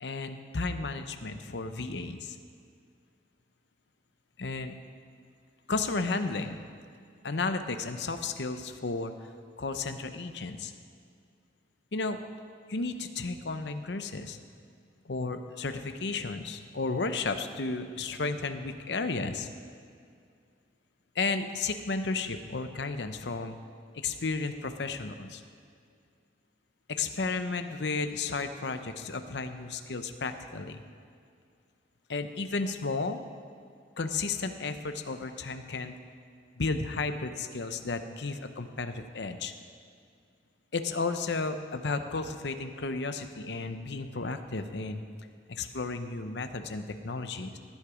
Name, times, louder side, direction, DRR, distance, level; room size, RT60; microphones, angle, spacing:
voice 1, 0.0-2.4 4.4-4.8 5.7-6.6 7.2-9.1 9.6-10.7 11.9-12.2 12.7-14.4 15.0-19.5 21.1-23.6 23.9-25.4 26.9-30.8 32.1-33.2 34.0-36.0 36.6-39.5 40.7-45.0 45.5-47.6, left 3 dB, 70° left, 8 dB, 0.8 m, -33 dB
18.0 x 10.0 x 5.0 m, 2.3 s
head